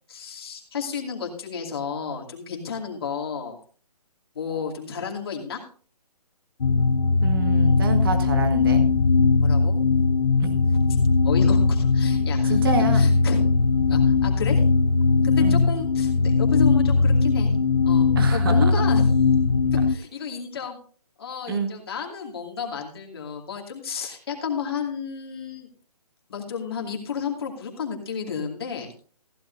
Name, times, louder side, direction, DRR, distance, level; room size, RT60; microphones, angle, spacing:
voice 1, 0.1-3.6 4.3-5.6 9.4-9.8 10.7-10.8 11.2-12.6 12.9-13.4 13.9-14.6 15.2-17.5 17.8-19.1 19.9-20.8 21.2-25.7 26.3-28.9, left 6 dB, 40° left, 1 dB, 2.5 m, -32 dB
sound 1, 6.6-20.0, left 4 dB, 90° left, 0.8 m, -19 dB
voice 2, 7.2-8.8 10.4-10.5 12.5-13.1 15.4-15.6 18.2-18.8 21.5-21.7, right 3 dB, 35° right, 6 dB, 1.8 m, -27 dB
15.5 x 11.0 x 2.7 m, 0.42 s
hypercardioid pair, 175°, 20 cm